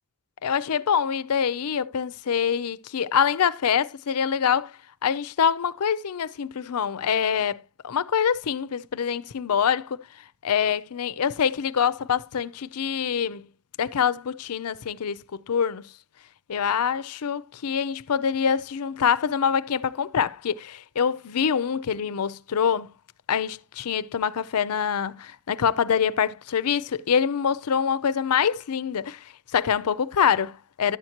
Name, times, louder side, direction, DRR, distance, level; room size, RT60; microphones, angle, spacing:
voice 1, 0.4-4.7 5.0-10.0 10.4-13.5 13.8-15.9 16.5-22.9 23.3-31.0, left 7 dB, 90° left, 0.5 m, -25 dB
11.0 x 7.8 x 2.9 m
head